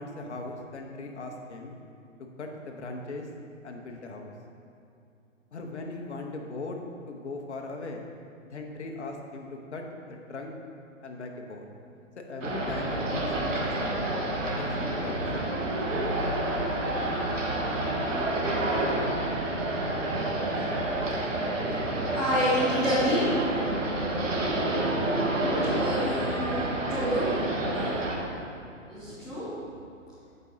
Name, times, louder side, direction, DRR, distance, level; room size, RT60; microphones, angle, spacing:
voice 1, 0.0-1.7 2.4-3.3 3.6-4.3 5.5-6.8 7.1-8.0 8.5-10.5 11.0-11.7 12.2-15.5, left 3 dB, 60° left, 2 dB, 1.2 m, -39 dB
sound 1, 12.4-28.2, right 1 dB, 70° right, 1.5 m, -29 dB
voice 2, 22.1-23.2 23.5-23.7 25.4-27.3 27.7-27.9 28.9-29.5, equal, ahead, -15 dB, 0.4 m, -29 dB
16.0 x 5.5 x 2.8 m, 2.6 s
figure-of-eight pair, 120°, 39 cm